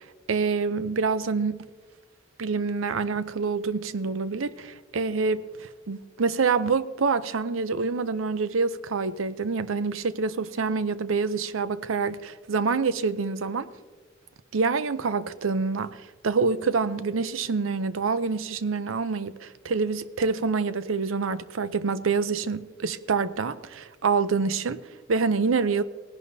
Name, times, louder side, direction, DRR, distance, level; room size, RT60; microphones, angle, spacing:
voice 1, 0.3-1.6 2.4-13.7 14.5-24.8 25.1-25.8, right 4 dB, 85° right, 0.6 m, -26 dB
18.5 x 11.0 x 2.7 m
head